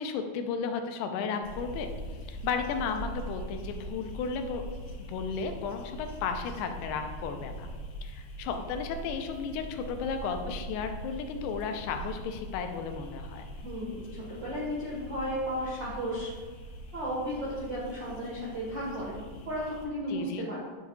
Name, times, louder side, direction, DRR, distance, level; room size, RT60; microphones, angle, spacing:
voice 1, 0.0-1.9 2.3-4.6 5.0-7.7 8.0-13.4 20.1-20.5, left 6 dB, 85° left, 6 dB, 2.7 m, -34 dB
sound 1, 1.4-19.9, right 1 dB, 55° left, 2.9 m, -42 dB
voice 2, 13.6-16.3 16.9-20.6, equal, 75° right, -6 dB, 1.0 m, -34 dB
10.0 x 7.0 x 2.4 m, 1.4 s
omnidirectional pair, 4.6 m